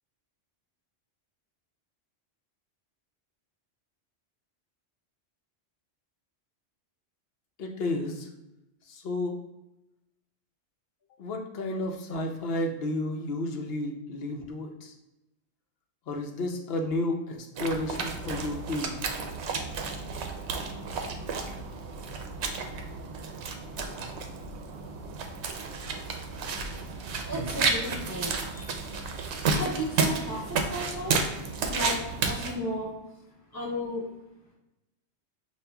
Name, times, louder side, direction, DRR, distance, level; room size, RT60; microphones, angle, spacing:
voice 1, 7.6-8.3 8.9-9.4 11.2-14.9 16.1-18.9, left 1 dB, 65° left, 2 dB, 0.8 m, -32 dB
sound 1, 17.6-32.6, right 4 dB, 80° right, 0.8 m, -32 dB
voice 2, 26.3-26.9 27.3-29.1 29.4-31.2 31.7-32.9 33.5-34.1, equal, 25° right, -3 dB, 0.4 m, -35 dB
6.4 x 2.4 x 2.2 m, 0.93 s
omnidirectional pair, 1.1 m